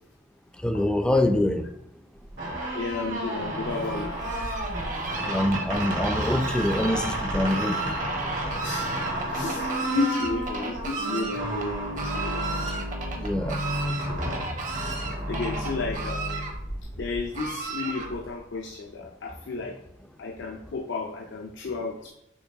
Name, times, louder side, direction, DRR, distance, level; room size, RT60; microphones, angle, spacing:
voice 1, 0.5-1.7 4.8-5.0 5.2-7.8 12.5-12.8 13.1-13.6 14.2-14.4, left 1 dB, 5° left, 6 dB, 0.3 m, -25 dB
sound 1, 2.2-16.8, right 1 dB, 85° right, 1.7 m, -32 dB
voice 2, 2.7-4.1 5.6-5.9 8.6-12.5 14.1-14.4 15.3-16.5 17.0-19.8 20.2-22.1, left 3 dB, 70° left, 2 dB, 0.4 m, -33 dB
Fowl, 3.6-18.4, right 3 dB, 45° right, 0.7 m, -35 dB
Mallet percussion, 11.0-14.2, right 1 dB, 65° right, 1.0 m, -40 dB
6.5 x 2.9 x 2.7 m, 0.77 s
head